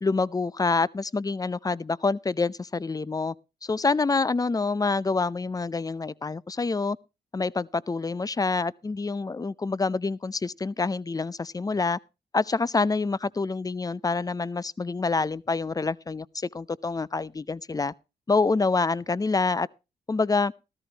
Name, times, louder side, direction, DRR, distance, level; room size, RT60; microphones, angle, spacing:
voice 1, 0.0-3.3 3.6-7.0 7.3-12.0 12.3-17.9 18.3-19.7 20.1-20.5, left 3 dB, 20° left, 0.5 m, -27 dB
14.0 x 13.5 x 2.9 m
cardioid pair, 65°, 18 cm